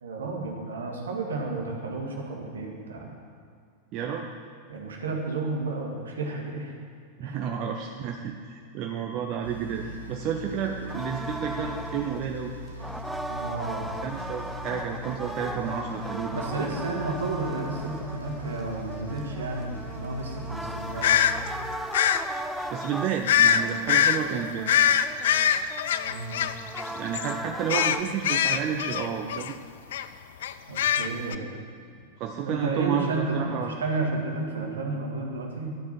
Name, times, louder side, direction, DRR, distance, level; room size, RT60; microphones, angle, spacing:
voice 1, 0.0-3.1 4.7-6.7 7.2-7.4 13.3-13.9 16.3-21.1 26.1-26.4 30.7-31.5 32.4-35.8, right 3 dB, 70° right, 0 dB, 1.7 m, -32 dB
voice 2, 3.9-4.3 7.2-12.5 14.0-16.6 22.7-24.7 26.9-29.6 32.2-33.8, right 7 dB, 40° right, 2 dB, 0.7 m, -31 dB
sound 1, 9.4-21.8, left 1 dB, 85° right, 1.1 m, -40 dB
sound 2, 10.9-28.0, right 1 dB, ahead, 0.5 m, -38 dB
sound 3, 21.0-21.3 21.9-22.2 23.3-23.6 23.9-24.2 24.7-26.9 27.1-27.3 27.7-29.5 29.9-30.0 30.4-31.3, left 9 dB, 60° left, 0.4 m, -22 dB
12.0 x 7.2 x 6.0 m, 2.2 s
figure-of-eight pair, 90°, 0 cm